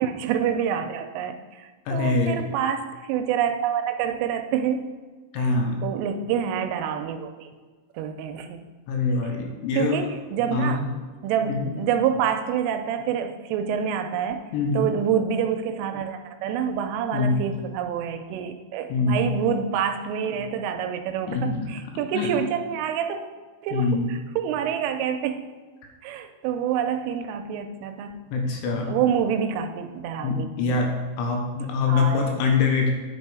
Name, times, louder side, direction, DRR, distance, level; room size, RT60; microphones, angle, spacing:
voice 1, 0.0-5.0 5.4-5.5 5.8-7.5 7.9-8.7 9.8-10.8 11.2-14.5 14.7-23.2 23.6-25.5 26.0-28.3 28.9-30.8 31.9-32.3, right 8 dB, 85° right, 7 dB, 3.0 m, -27 dB
voice 2, 1.9-2.4 5.3-5.8 8.9-10.0 10.5-10.9 11.5-11.7 14.5-14.9 17.1-17.4 18.9-19.3 21.3-21.6 22.1-22.3 23.7-24.1 28.3-29.0 30.2-32.9, left 4 dB, 75° left, 2 dB, 3.1 m, -24 dB
9.7 x 5.4 x 4.8 m, 1.4 s
omnidirectional pair, 5.8 m